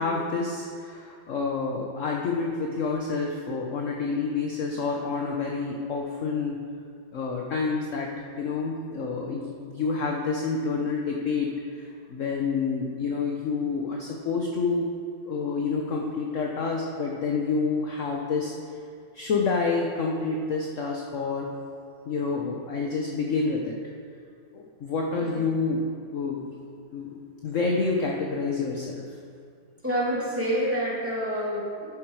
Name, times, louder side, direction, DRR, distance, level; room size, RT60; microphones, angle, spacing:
voice 1, 0.0-6.6 7.1-14.9 15.3-18.5 19.1-21.5 22.1-23.8 24.5-25.9 26.1-26.5 26.9-29.1, left 4 dB, 55° left, 0 dB, 1.0 m, -28 dB
voice 2, 25.2-25.6 29.8-32.0, equal, 5° right, -8 dB, 2.6 m, -28 dB
13.0 x 7.2 x 4.8 m, 2.3 s
omnidirectional pair, 2.0 m